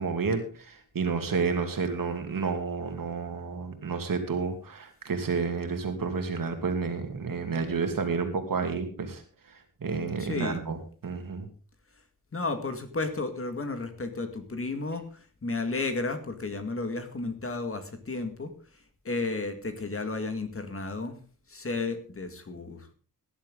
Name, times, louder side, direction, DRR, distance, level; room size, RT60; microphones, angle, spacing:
voice 1, 0.0-9.2 9.5-10.8 11.0-11.5, right 5 dB, 60° right, 6 dB, 2.7 m, -30 dB
voice 2, 10.2-10.6 12.3-21.2 21.5-22.9, left 3 dB, 35° left, 8 dB, 1.9 m, -33 dB
17.0 x 11.0 x 3.9 m, 0.38 s
wide cardioid pair, 135°, 37 cm